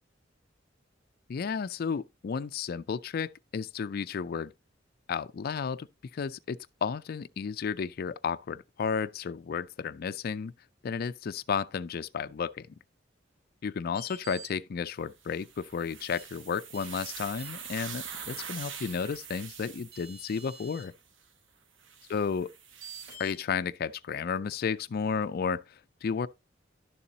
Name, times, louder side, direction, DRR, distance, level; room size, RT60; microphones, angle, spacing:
voice 1, 1.3-4.5 5.1-5.9 6.1-10.5 10.8-12.7 13.6-20.9 22.1-22.5 23.2-26.3, left 6 dB, 50° left, 0.4 m, -33 dB
sound 1, 13.9-14.5 16.1-16.2 16.7-16.9 17.4-17.8 19.4-19.5 19.9-20.8 22.8-23.3, right 2 dB, 55° right, 4.4 m, -47 dB
sound 2, 15.2-20.7 21.8-23.2, right 7 dB, 85° right, 1.2 m, -44 dB
11.0 x 6.9 x 2.7 m
head